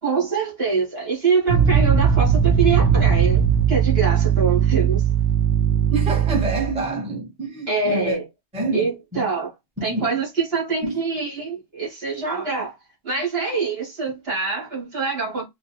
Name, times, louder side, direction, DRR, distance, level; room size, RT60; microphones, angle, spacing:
voice 1, 0.0-5.1 7.7-8.3 8.7-9.5 9.8-12.7 13.0-15.4, right 5 dB, 55° right, 2.0 m, -24 dB
sound 1, 1.5-6.8, right 8 dB, 85° right, 1.0 m, -18 dB
voice 2, 5.9-8.2 8.5-8.9 9.1-9.2 9.8-10.1 10.8-11.0, right 2 dB, 5° right, 0.8 m, -27 dB
4.1 x 2.2 x 2.7 m
omnidirectional pair, 1.3 m